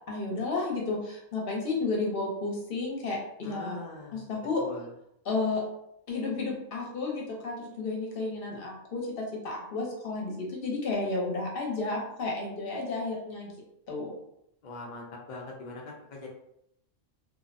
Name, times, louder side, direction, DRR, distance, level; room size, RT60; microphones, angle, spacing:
voice 1, 0.1-3.8 4.1-4.6 5.3-5.6 6.1-13.5 13.9-14.1, left 3 dB, 55° left, -2 dB, 0.8 m, -32 dB
voice 2, 3.4-4.3 4.6-4.9 14.6-16.3, left 2 dB, 75° left, -1 dB, 0.4 m, -42 dB
2.7 x 2.0 x 2.5 m, 0.77 s
omnidirectional pair, 1.3 m